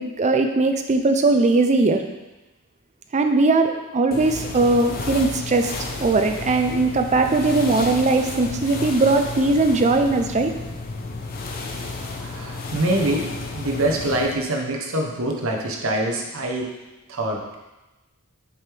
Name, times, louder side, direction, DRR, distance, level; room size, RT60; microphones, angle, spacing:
voice 1, 0.0-2.0 3.1-5.7 6.0-10.5, right 3 dB, 30° right, 5 dB, 0.5 m, -19 dB
sound 1, 4.1-14.4, left 3 dB, 45° left, 0.7 m, -32 dB
voice 2, 12.1-16.7 17.1-17.6, right 1 dB, 65° right, 0 dB, 1.0 m, -25 dB
7.0 x 4.6 x 3.4 m, 1.1 s
head